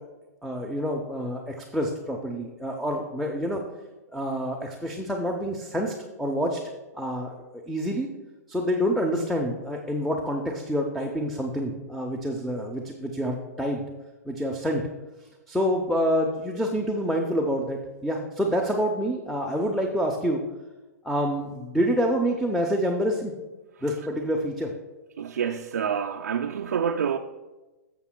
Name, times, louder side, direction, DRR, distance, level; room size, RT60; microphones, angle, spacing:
voice 1, 0.4-3.6 4.1-6.6 6.9-8.1 8.5-13.8 14.3-14.9 15.5-20.4 21.0-23.3 23.8-24.7, equal, ahead, 1 dB, 0.6 m, -27 dB
voice 2, 25.2-27.2, right 7 dB, 80° right, 3 dB, 0.5 m, -27 dB
12.5 x 7.1 x 2.2 m, 1.1 s
hypercardioid pair, 125°, 9 cm